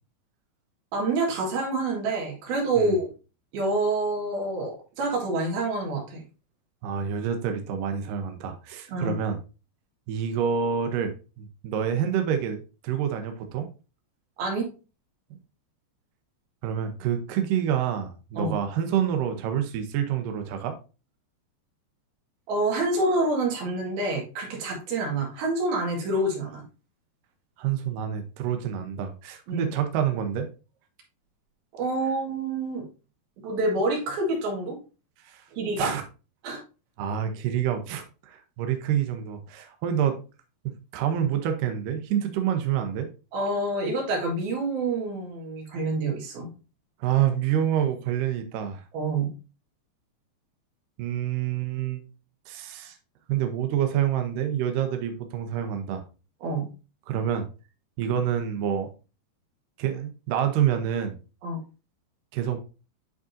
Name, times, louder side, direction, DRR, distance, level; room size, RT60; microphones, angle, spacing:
voice 1, 0.9-3.1 3.5-6.2 8.9-9.2 14.4-14.7 18.4-18.6 22.5-26.6 29.5-29.7 31.8-32.8 33.4-34.8 35.6-35.9 36.4-36.6 43.3-46.5 48.9-49.3 56.4-56.7 61.4-61.6, right 2 dB, 60° right, -1 dB, 3.6 m, -27 dB
voice 2, 6.8-9.4 10.1-11.1 11.4-13.7 16.6-20.8 27.6-30.5 35.2-35.4 35.8-36.0 37.0-40.2 40.6-43.1 47.0-48.8 51.0-52.0 52.5-53.0 53.3-56.0 57.1-57.5 58.0-58.9 59.8-61.2 62.3-62.6, right 9 dB, 85° right, 6 dB, 1.9 m, -27 dB
11.0 x 3.7 x 2.7 m, 0.32 s
omnidirectional pair, 5.1 m